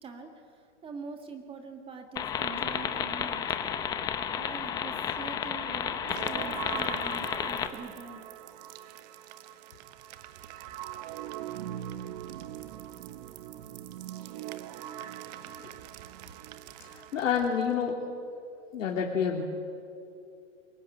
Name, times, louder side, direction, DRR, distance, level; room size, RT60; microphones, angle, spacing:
voice 1, 0.0-3.5 4.4-8.3, right 4 dB, 15° right, 5 dB, 1.8 m, -44 dB
sound 1, 2.2-7.7, left 8 dB, 10° left, 0.6 m, -32 dB
sound 2, 6.0-17.9, right 12 dB, 35° right, 1.0 m, -42 dB
voice 2, 16.8-18.0 18.7-19.4, left 7 dB, 90° left, -1 dB, 3.2 m, -29 dB
23.5 x 19.0 x 9.5 m, 2.5 s
hypercardioid pair, 160°, 38 cm